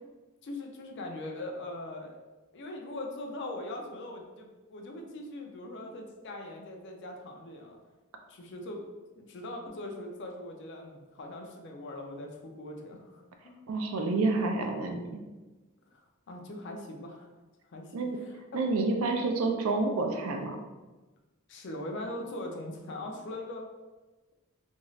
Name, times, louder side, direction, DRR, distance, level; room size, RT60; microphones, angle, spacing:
voice 1, 0.4-2.2 2.5-7.8 8.3-8.9 9.2-13.6 16.3-17.3 17.7-17.9 18.2-18.6 21.5-23.7, left 1 dB, 55° left, 2 dB, 0.4 m, -41 dB
voice 2, 13.7-15.2 17.9-18.2 18.5-20.6, right 3 dB, 80° right, 4 dB, 0.4 m, -29 dB
2.6 x 2.3 x 3.1 m, 1.2 s
head